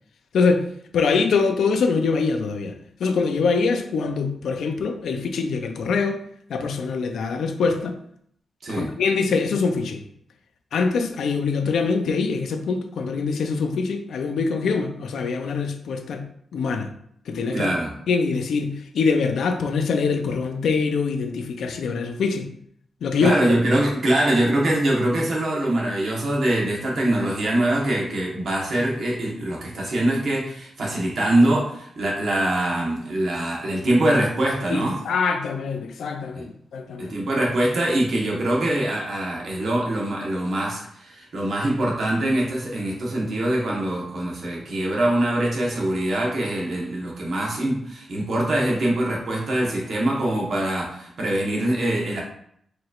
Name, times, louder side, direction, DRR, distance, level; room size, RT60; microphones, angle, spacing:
voice 1, 0.3-0.7 0.9-6.2 6.5-8.0 8.7-10.0 10.7-16.9 17.3-17.7 18.1-22.5 23.0-23.4 34.7-37.2, left 4 dB, 80° left, 6 dB, 0.4 m, -24 dB
voice 2, 17.5-17.9 23.2-35.0 36.4-36.5 37.0-52.2, right 1 dB, 55° right, -3 dB, 1.1 m, -23 dB
4.5 x 3.0 x 2.4 m, 0.67 s
wide cardioid pair, 175°, 0 cm